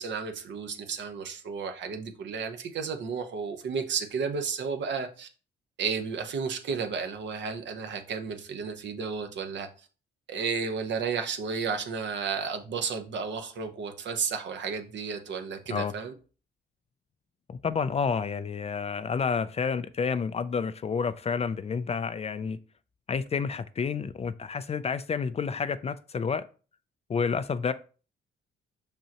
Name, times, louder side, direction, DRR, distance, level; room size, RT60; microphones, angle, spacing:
voice 1, 0.0-5.3 5.8-9.9 10.3-16.1, right 5 dB, 65° right, 1.0 m, -32 dB
voice 2, 17.6-22.6 23.1-26.5 27.1-27.7, left 5 dB, 30° left, 0.4 m, -29 dB
6.0 x 5.4 x 2.9 m
cardioid pair, 90°, 20 cm